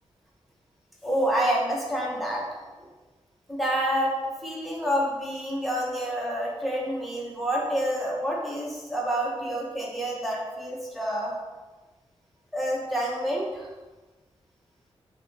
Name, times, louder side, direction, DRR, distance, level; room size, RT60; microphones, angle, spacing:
voice 1, 1.0-2.5 3.5-11.3 12.5-13.7, equal, ahead, -4 dB, 0.7 m, -28 dB
5.9 x 2.1 x 3.2 m, 1.2 s
wide cardioid pair, 180°, 10 cm